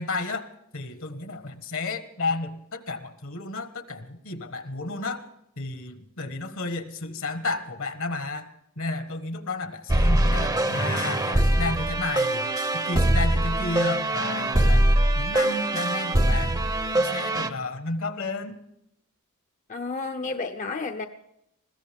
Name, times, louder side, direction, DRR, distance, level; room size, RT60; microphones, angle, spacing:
voice 1, 0.0-5.2 5.6-8.5 8.8-14.9 15.1-16.6 16.9-18.6, left 3 dB, 65° left, 9 dB, 1.4 m, -32 dB
sound 1, 9.9-17.5, right 1 dB, 15° right, 0.7 m, -23 dB
voice 2, 19.7-21.1, left 3 dB, 35° left, 7 dB, 0.7 m, -31 dB
21.0 x 15.5 x 3.6 m, 0.79 s
head